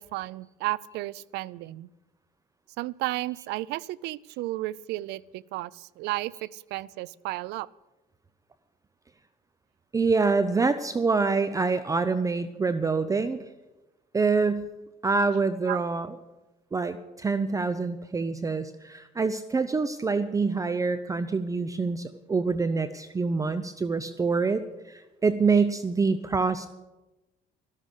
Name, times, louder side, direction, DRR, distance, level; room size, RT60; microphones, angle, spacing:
voice 1, 0.0-1.9 2.8-7.7 15.7-15.8, right 18 dB, 85° right, 23 dB, 0.4 m, -33 dB
voice 2, 9.9-13.4 14.1-14.7 15.0-16.2 16.7-26.7, right 4 dB, 20° right, 13 dB, 0.6 m, -26 dB
13.0 x 13.0 x 6.5 m, 1.1 s
cardioid pair, 110°, 17 cm